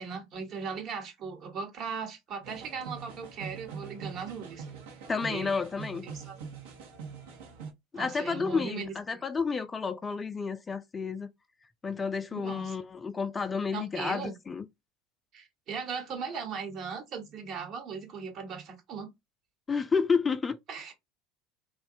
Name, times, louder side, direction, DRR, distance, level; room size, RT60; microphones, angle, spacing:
voice 1, 0.0-4.7 5.2-5.5 6.0-6.4 7.9-8.9 12.3-12.8 13.7-14.3 15.3-19.1 20.7-20.9, right 5 dB, 50° right, 1.0 m, -38 dB
sound 1, 2.4-7.7, right 5 dB, 70° right, 0.7 m, -43 dB
voice 2, 5.1-6.1 7.9-11.3 11.8-14.7 19.7-20.6, left 5 dB, 25° left, 0.3 m, -30 dB
2.6 x 2.1 x 2.6 m
hypercardioid pair, 70°, 0 cm